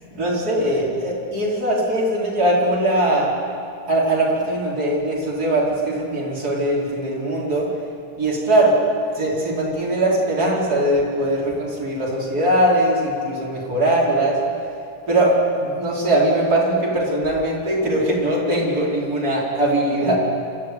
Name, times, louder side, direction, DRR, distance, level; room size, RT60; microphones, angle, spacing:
voice 1, 0.1-3.3 3.9-7.7 8.2-8.7 9.1-14.4 15.1-20.2, right 1 dB, 30° right, -5 dB, 5.0 m, -20 dB
26.0 x 13.5 x 9.4 m, 2.4 s
omnidirectional pair, 3.6 m